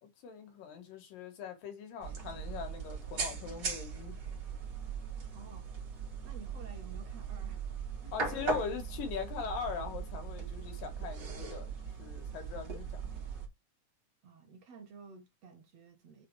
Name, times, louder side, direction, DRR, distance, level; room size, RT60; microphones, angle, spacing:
voice 1, 0.0-4.2 8.1-13.2, left 6 dB, 90° left, 3.5 m, -41 dB
sound 1, 2.0-13.5, right 5 dB, 35° right, 2.6 m, -39 dB
voice 2, 5.3-5.7 6.0-7.6 8.0-8.1 14.2-16.3, right 5 dB, 55° right, 2.4 m, -52 dB
6.9 x 3.9 x 4.8 m
omnidirectional pair, 3.8 m